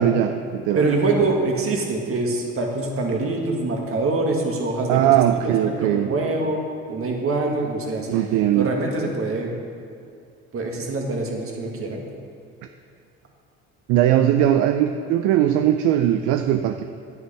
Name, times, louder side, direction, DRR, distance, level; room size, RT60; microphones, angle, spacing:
voice 1, 0.0-0.9 4.9-6.1 8.1-8.7 13.9-16.8, right 11 dB, 70° right, 8 dB, 0.6 m, -19 dB
voice 2, 0.7-5.0 5.4-6.6 6.9-8.2 8.5-9.5 10.5-12.0, right 3 dB, 45° right, 0 dB, 2.0 m, -24 dB
9.9 x 9.5 x 3.5 m, 2.4 s
hypercardioid pair, 60°, 31 cm